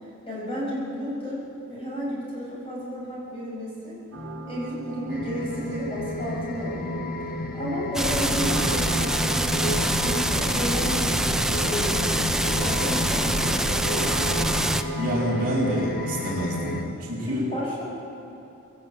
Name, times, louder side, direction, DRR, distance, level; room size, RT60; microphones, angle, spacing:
voice 1, 0.3-1.4 1.7-4.0 4.5-7.0 7.5-13.7 17.2-17.8, equal, 25° left, -5 dB, 7.2 m, -32 dB
sound 1, 4.1-16.4, right 1 dB, 65° right, 2.8 m, -37 dB
sound 2, 5.1-16.8, left 1 dB, 45° left, 1.5 m, -32 dB
sound 3, 7.9-14.8, right 1 dB, ahead, 0.6 m, -25 dB
voice 2, 15.0-17.4, equal, 40° right, -11 dB, 7.1 m, -27 dB
22.0 x 17.5 x 8.6 m, 2.9 s
head